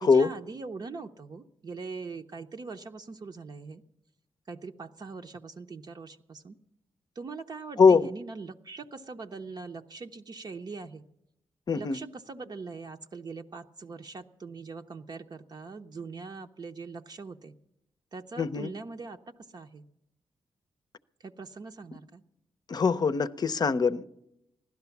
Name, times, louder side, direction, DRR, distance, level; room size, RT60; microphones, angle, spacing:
voice 1, 0.0-3.8 4.5-6.6 7.2-11.0 11.7-17.5 18.1-19.2 19.5-19.8 21.2-22.2, right 4 dB, 45° right, 0.7 m, -41 dB
voice 2, 7.8-8.1 11.7-12.0 18.4-18.7 22.7-24.1, left 5 dB, 45° left, 0.6 m, -22 dB
16.0 x 12.0 x 7.1 m
cardioid pair, 70°, 9 cm